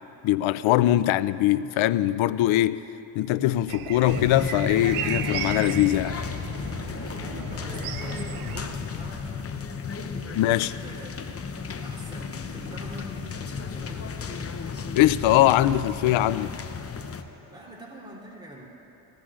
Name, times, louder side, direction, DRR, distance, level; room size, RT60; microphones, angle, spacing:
voice 1, 0.2-2.8 3.2-6.2 10.4-10.7 14.9-16.5, left 14 dB, 70° left, 16 dB, 0.6 m, -21 dB
sound 1, 3.7-8.7, right 10 dB, 75° right, 0.8 m, -35 dB
sound 2, 4.1-17.2, left 5 dB, 30° left, 0.7 m, -34 dB
sound 3, 5.8-17.8, left 2 dB, 50° left, 3.8 m, -55 dB
voice 2, 7.2-9.4 10.1-11.1 11.8-14.8 16.3-16.5 17.5-18.7, equal, 10° right, -4 dB, 3.2 m, -44 dB
20.0 x 16.5 x 2.5 m, 2.8 s
cardioid pair, 70°, 50 cm